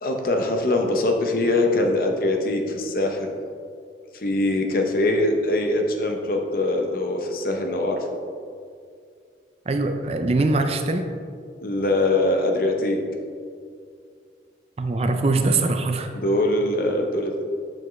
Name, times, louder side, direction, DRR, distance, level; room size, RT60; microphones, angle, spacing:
voice 1, 0.0-3.3 4.1-8.1 11.6-13.0 16.1-17.4, left 2 dB, 50° left, 3 dB, 0.7 m, -23 dB
voice 2, 9.7-11.1 14.8-16.1, right 3 dB, 35° right, 6 dB, 0.4 m, -22 dB
6.9 x 6.1 x 3.1 m, 2.2 s
head